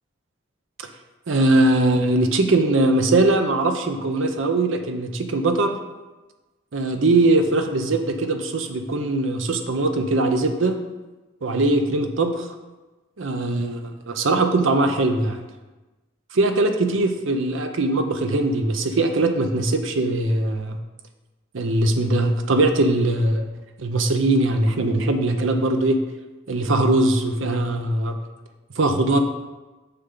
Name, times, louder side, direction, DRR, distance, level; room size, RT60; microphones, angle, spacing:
voice 1, 1.3-5.8 6.7-10.8 11.4-12.5 13.2-15.4 16.3-20.8 21.5-23.5 23.8-26.0 26.5-28.2 28.8-29.2, right 2 dB, 80° right, 6 dB, 0.7 m, -21 dB
6.8 x 5.7 x 3.8 m, 1.2 s
head